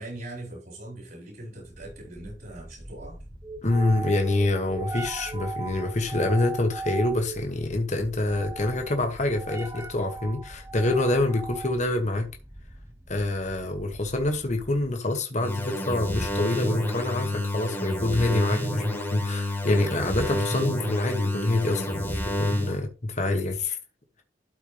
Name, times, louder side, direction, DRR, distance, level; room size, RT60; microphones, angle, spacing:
voice 1, 0.0-3.2, right 1 dB, 55° right, 4.4 m, -41 dB
sound 1, 1.6-15.0, right 3 dB, 15° right, 0.8 m, -39 dB
voice 2, 3.6-12.3 13.1-23.8, left 2 dB, 40° left, 1.3 m, -26 dB
sound 2, 15.4-22.8, left 1 dB, 10° left, 1.7 m, -29 dB
12.5 x 4.5 x 3.4 m
head